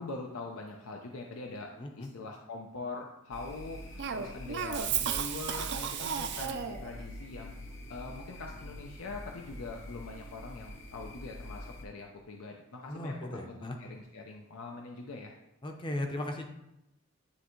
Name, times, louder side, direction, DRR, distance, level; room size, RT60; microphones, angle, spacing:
voice 1, 0.0-7.6 7.9-15.3, left 3 dB, 80° left, 1 dB, 0.6 m, -43 dB
voice 2, 1.8-2.1 12.9-13.8 15.6-16.5, left 1 dB, 25° left, 4 dB, 0.6 m, -37 dB
sound 1, 3.3-11.8, left 1 dB, 60° left, 0.9 m, -46 dB
Cough, 4.0-6.9, right 8 dB, 55° right, 0.4 m, -33 dB
9.9 x 3.3 x 3.1 m, 0.90 s
head